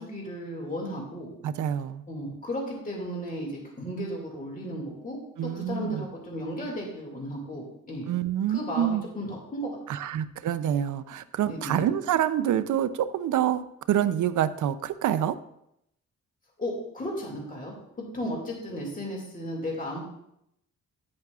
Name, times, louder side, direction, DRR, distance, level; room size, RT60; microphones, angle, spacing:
voice 1, 0.0-1.3 2.1-8.1 8.5-10.1 11.5-11.9 16.6-17.7 18.1-20.0, equal, 25° left, -2 dB, 2.3 m, -35 dB
voice 2, 1.4-2.0 5.4-6.0 8.1-9.0 9.9-15.4 18.2-18.3, right 10 dB, 80° right, 13 dB, 0.6 m, -27 dB
10.5 x 9.5 x 2.4 m, 0.79 s
cardioid pair, 110°, 30 cm